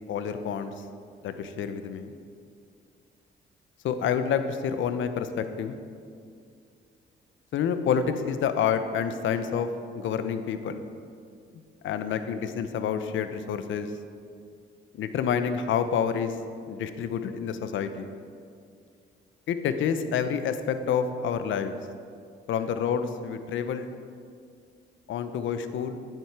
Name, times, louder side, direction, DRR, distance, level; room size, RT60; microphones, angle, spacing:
voice 1, 0.1-0.7 1.2-2.1 3.8-5.8 7.5-9.7 9.9-10.8 11.8-13.9 15.0-16.4 16.7-18.1 19.5-21.8 22.5-23.9 25.1-26.0, left 7 dB, 75° left, 10 dB, 0.8 m, -28 dB
14.0 x 7.7 x 4.8 m, 2.3 s
cardioid pair, 90°, 20 cm